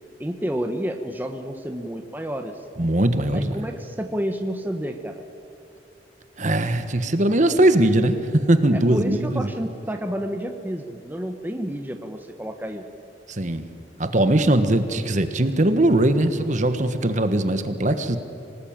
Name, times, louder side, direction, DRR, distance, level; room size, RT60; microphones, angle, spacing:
voice 1, 0.2-2.6 3.3-5.2 8.7-12.8, equal, 10° right, 5 dB, 1.1 m, -30 dB
voice 2, 2.8-3.6 6.4-9.5 13.3-13.7 14.0-18.2, right 1 dB, 45° right, 9 dB, 1.4 m, -20 dB
25.5 x 19.0 x 8.9 m, 2.8 s
head